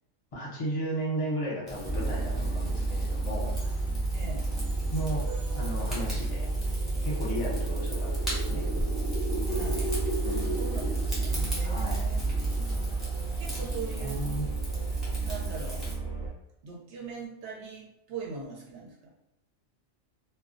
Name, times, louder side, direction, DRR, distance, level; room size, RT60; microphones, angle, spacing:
voice 1, 0.3-3.7 4.9-5.2 5.5-6.5 7.0-8.6 10.2-10.7 11.6-12.0 13.6-14.4, right 1 dB, 35° left, -5 dB, 0.6 m, -35 dB
Rain / Fire, 1.7-15.9, equal, ahead, 0.8 m, -41 dB
sound 1, 1.8-16.3, right 3 dB, 25° right, 0.5 m, -30 dB
voice 2, 4.1-4.5 9.4-9.9 10.4-10.8 11.2-12.3 12.5-12.7 13.4-14.2 15.2-15.8 16.6-19.1, right 4 dB, 65° right, -2 dB, 0.8 m, -41 dB
2.2 x 2.2 x 2.5 m, 0.82 s
omnidirectional pair, 1.4 m